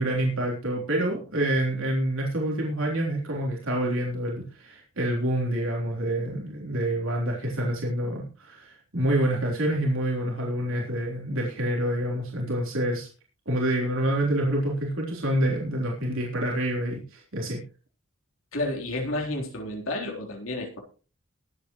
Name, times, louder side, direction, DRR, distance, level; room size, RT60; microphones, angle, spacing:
voice 1, 0.0-13.1 13.5-17.6, right 1 dB, 70° right, -2 dB, 3.7 m, -27 dB
voice 2, 18.5-20.8, left 1 dB, 75° left, 0 dB, 3.7 m, -31 dB
22.0 x 8.7 x 3.1 m, 0.36 s
head